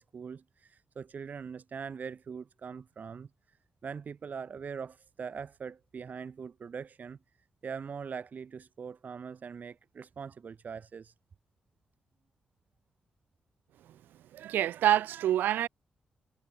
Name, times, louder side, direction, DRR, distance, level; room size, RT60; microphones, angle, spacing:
voice 1, 0.0-3.6 3.8-7.2 7.6-11.1, right 6 dB, 60° right, 3.8 m, -42 dB
voice 2, 14.3-15.7, right 12 dB, 85° right, 0.8 m, -26 dB
supercardioid pair, 50°, 3 cm